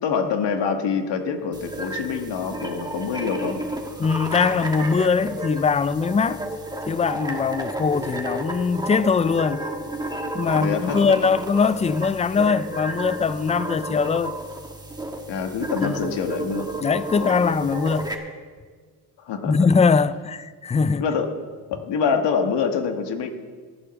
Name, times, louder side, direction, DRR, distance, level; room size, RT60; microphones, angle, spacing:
voice 1, 0.0-3.6 10.5-11.1 15.3-16.7 17.1-17.5 19.2-19.6 21.0-21.3 21.7-23.3, left 6 dB, 70° left, 1.7 m, -26 dB
sound 1, 1.5-18.1, right 1 dB, 10° right, 1.5 m, -32 dB
voice 2, 4.0-6.4 6.9-9.6 10.3-14.4 15.8-16.1 16.8-18.1 19.5-21.0, left 5 dB, 15° left, 0.3 m, -21 dB
14.5 x 9.4 x 7.1 m
cardioid pair, 110°, 44 cm